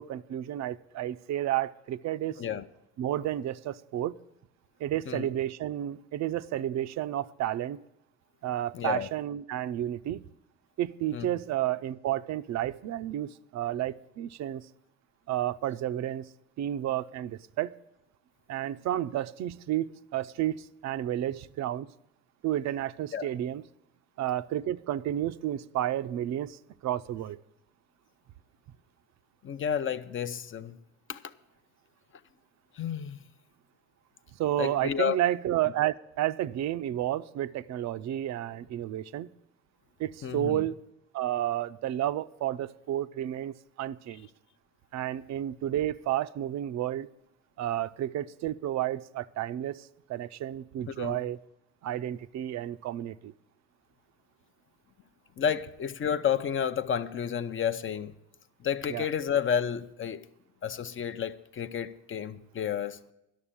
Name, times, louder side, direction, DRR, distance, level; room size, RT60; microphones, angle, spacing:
voice 1, 0.0-2.4 3.0-4.2 4.8-7.8 8.4-10.2 10.8-14.7 15.3-16.3 16.6-17.8 18.5-21.9 22.4-23.6 24.2-27.4 34.3-39.3 40.0-40.8 41.1-44.3 44.9-47.1 47.6-51.4 51.8-53.3 58.9-59.1, right 12 dB, 55° right, 0.5 m, -31 dB
voice 2, 8.7-9.1 11.1-11.3 23.1-23.3 29.4-30.8 31.1-31.2 32.8-33.2 34.6-35.2 40.2-40.6 50.9-51.2 55.4-58.1 58.6-60.2 60.6-63.0, left 8 dB, 40° left, 0.6 m, -31 dB
11.5 x 6.6 x 8.6 m
cardioid pair, 90°, 33 cm